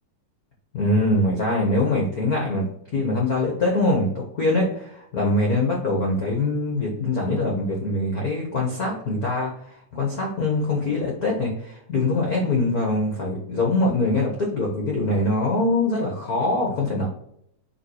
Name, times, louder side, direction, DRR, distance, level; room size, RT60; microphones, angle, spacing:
voice 1, 0.7-4.1 4.3-9.7 9.9-17.1, left 2 dB, 70° left, -2 dB, 0.9 m, -23 dB
7.3 x 3.1 x 4.8 m, 0.72 s
omnidirectional pair, 3.8 m